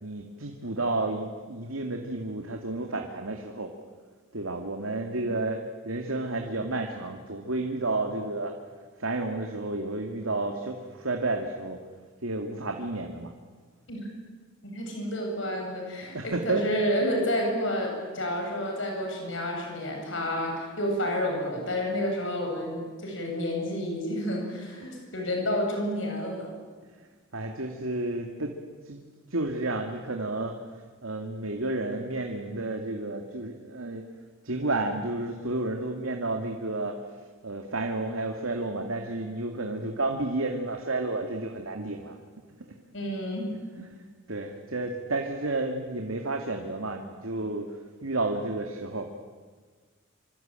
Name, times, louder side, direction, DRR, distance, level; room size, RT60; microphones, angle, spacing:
voice 1, 0.0-3.7 4.3-8.5 9.0-11.8 12.2-13.3 16.1-16.7 24.8-25.0 27.3-28.6 28.8-29.0 29.3-34.0 34.4-42.2 43.7-49.1, right 2 dB, 85° right, 3 dB, 2.3 m, -31 dB
voice 2, 13.9-14.2 14.6-26.5 42.9-43.5, equal, 65° left, 1 dB, 7.8 m, -30 dB
25.5 x 25.5 x 9.0 m, 1.5 s
head